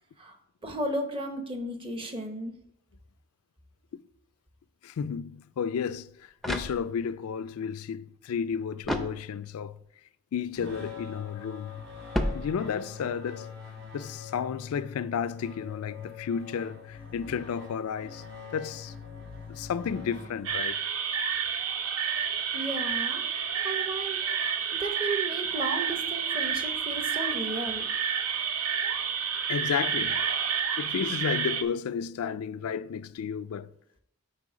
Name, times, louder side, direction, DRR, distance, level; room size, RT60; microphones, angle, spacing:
voice 1, 0.6-2.5 22.5-24.4 24.7-27.8, right 1 dB, 25° right, 0.8 m, -34 dB
voice 2, 4.8-6.1 6.5-9.7 10.3-11.8 12.3-13.5 13.9-18.2 18.5-18.9 19.5-20.8 29.5-30.2 30.8-33.7, left 7 dB, 80° left, 0.3 m, -32 dB
sound 1, 6.1-7.3 8.8-9.7 12.1-13.0, equal, ahead, 0.5 m, -33 dB
sound 2, 10.5-20.8, left 6 dB, 60° right, 3.4 m, -43 dB
sound 3, 20.5-31.6, right 7 dB, 85° right, 0.8 m, -30 dB
8.3 x 4.5 x 5.0 m
head